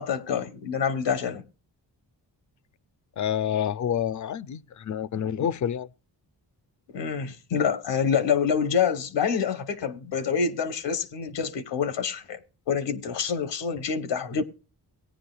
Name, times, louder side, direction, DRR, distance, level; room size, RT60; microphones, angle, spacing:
voice 1, 0.0-1.4 6.9-12.4 12.7-14.4, left 6 dB, 85° left, 1.1 m, -27 dB
voice 2, 3.2-5.9, left 9 dB, 45° left, 0.4 m, -28 dB
18.0 x 9.6 x 2.3 m
cardioid pair, 85°, 42 cm